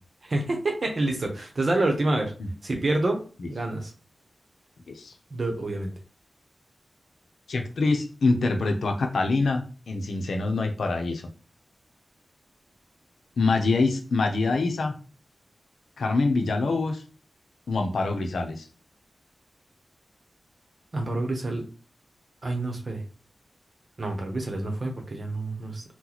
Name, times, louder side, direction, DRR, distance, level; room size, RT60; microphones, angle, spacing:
voice 1, 0.2-2.3 2.6-3.2 3.5-3.9 5.3-5.9 20.9-21.7 22.4-23.0 24.0-25.8, right 2 dB, 45° right, 2 dB, 0.8 m, -27 dB
voice 2, 7.5-9.6 9.9-11.2 13.4-14.9 16.0-17.0 17.7-18.6, left 3 dB, 90° left, 3 dB, 0.6 m, -25 dB
3.0 x 2.2 x 3.9 m, 0.37 s
wide cardioid pair, 110°, 0 cm